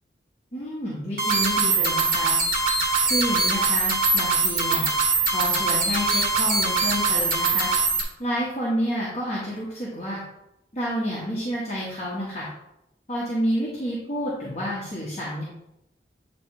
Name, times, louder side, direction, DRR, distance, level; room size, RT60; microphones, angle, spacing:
voice 1, 0.5-2.4 3.0-4.9 5.3-7.7 8.2-10.2 10.7-12.5 13.1-15.4, equal, 40° left, -7 dB, 1.3 m, -29 dB
sound 1, 1.2-8.0, right 3 dB, 50° right, 1.5 m, -22 dB
7.9 x 3.2 x 4.8 m, 0.86 s
head